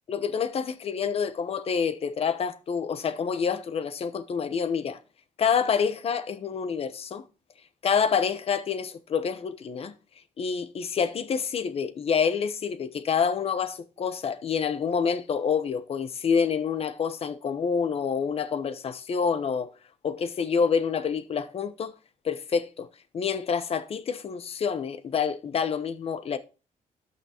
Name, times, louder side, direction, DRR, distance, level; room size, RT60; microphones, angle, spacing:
voice 1, 0.1-5.0 5.4-7.2 7.8-9.9 10.4-19.7 20.0-21.9 22.2-22.9 23.1-26.4, left 6 dB, 45° left, 0.9 m, -27 dB
12.5 x 6.0 x 2.9 m
cardioid pair, 145°, 14 cm